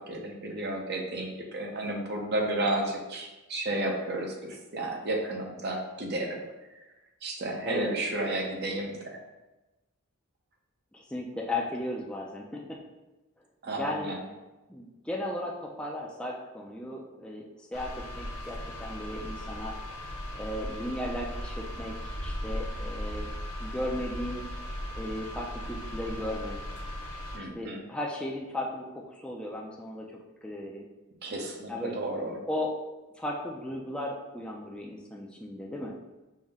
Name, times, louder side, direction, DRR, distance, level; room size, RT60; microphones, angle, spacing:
voice 1, 0.0-6.4 7.2-9.2 13.6-14.2 27.3-27.8 31.2-32.4, right 1 dB, 45° right, 1 dB, 0.7 m, -32 dB
voice 2, 10.9-12.8 13.8-14.2 14.7-19.8 20.3-23.3 23.6-24.5 25.0-26.6 27.5-30.1 30.4-30.9 31.7-32.0 32.5-32.7 33.2-36.0, left 1 dB, 5° left, -2 dB, 0.3 m, -36 dB
sound 1, 17.7-27.4, equal, 85° left, 0.7 m, -37 dB
5.5 x 2.1 x 3.5 m, 1.1 s
head